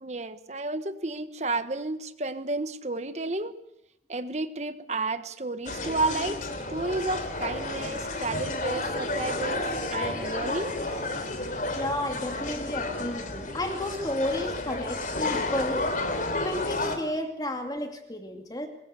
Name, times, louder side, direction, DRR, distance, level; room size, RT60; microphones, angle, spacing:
voice 1, 0.0-3.5 4.1-10.8, right 3 dB, 40° right, 11 dB, 1.3 m, -32 dB
sound 1, 5.7-17.0, left 2 dB, 45° left, 3.3 m, -31 dB
voice 2, 11.8-15.9 16.4-18.7, left 1 dB, 20° left, 5 dB, 2.4 m, -32 dB
24.0 x 21.5 x 8.2 m, 0.83 s
head